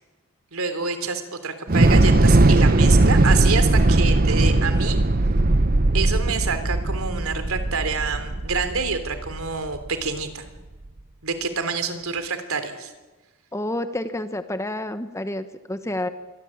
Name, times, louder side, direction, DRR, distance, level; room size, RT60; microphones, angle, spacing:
voice 1, 0.5-5.0 5.9-10.4 11.2-12.9, right 5 dB, 70° right, 9 dB, 3.4 m, -27 dB
Thunder / Explosion, 1.7-9.9, right 2 dB, 40° right, 0.9 m, -18 dB
voice 2, 13.5-16.1, left 1 dB, 15° left, 10 dB, 1.1 m, -29 dB
25.5 x 23.0 x 8.8 m, 1.2 s
head